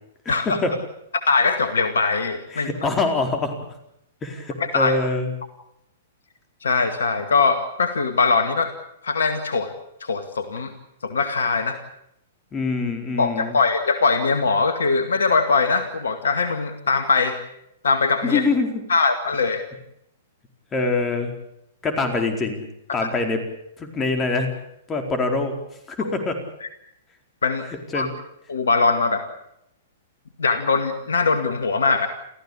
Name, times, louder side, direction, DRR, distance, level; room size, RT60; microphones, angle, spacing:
voice 1, 0.2-0.7 2.5-3.6 4.2-5.3 12.5-13.6 18.2-18.8 20.7-21.3 21.8-22.6 22.9-23.4 23.8-24.5 24.9-25.5 25.9-26.4 27.9-28.1, left 3 dB, 20° left, 5 dB, 4.4 m, -24 dB
voice 2, 1.3-2.7 4.6-5.0 6.6-8.7 9.0-9.7 10.0-10.7 11.0-11.8 13.2-17.4 17.8-18.4 18.9-19.6 23.0-23.1 26.0-26.1 26.6-26.7 27.4-27.7 27.9-28.1 28.5-29.2 30.4-32.1, left 4 dB, 70° left, 8 dB, 2.1 m, -21 dB
29.0 x 15.0 x 8.5 m, 0.78 s
figure-of-eight pair, 110°, 0 cm